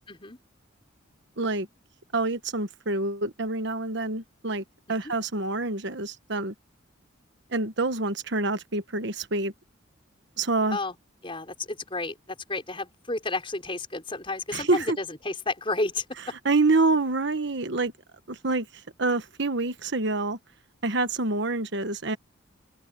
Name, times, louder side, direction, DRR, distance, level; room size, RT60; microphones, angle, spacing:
voice 1, 0.1-0.4 5.0-5.1 10.7-10.9 11.2-16.0, left 2 dB, 25° left, 4.7 m, -31 dB
voice 2, 1.4-1.7 2.1-6.5 7.5-9.5 10.4-10.8 14.5-15.0 16.4-17.9 18.3-18.7 19.0-20.4 20.8-22.2, right 3 dB, 60° right, 1.3 m, -26 dB
open air
head